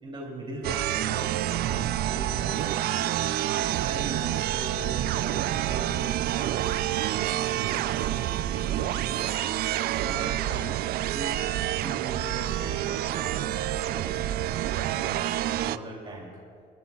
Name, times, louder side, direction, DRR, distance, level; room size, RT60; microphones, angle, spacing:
voice 1, 0.0-3.1 3.7-6.7 7.1-10.7 11.1-14.3 14.9-16.4, right 1 dB, 30° right, -2 dB, 3.0 m, -40 dB
sound 1, 0.6-15.8, right 13 dB, 65° right, 0.4 m, -28 dB
25.5 x 12.5 x 2.4 m, 2.3 s
cardioid pair, 110°, 17 cm